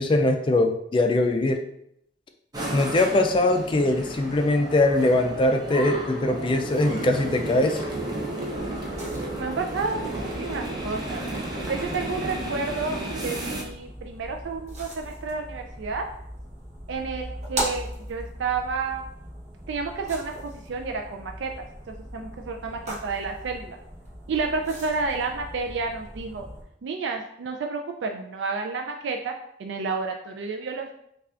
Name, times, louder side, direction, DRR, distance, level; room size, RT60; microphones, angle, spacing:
voice 1, 0.0-1.7 2.7-7.8, left 2 dB, 25° left, 5 dB, 0.3 m, -22 dB
sound 1, 2.5-13.6, right 1 dB, 20° right, 0.6 m, -33 dB
sound 2, 8.5-26.6, right 1 dB, 40° right, 1.0 m, -39 dB
voice 2, 9.3-11.2 11.7-16.0 16.9-19.0 19.7-21.6 22.1-23.8 24.3-26.5 26.8-30.9, right 4 dB, 80° right, 3 dB, 0.4 m, -30 dB
5.5 x 2.4 x 2.4 m, 0.75 s
head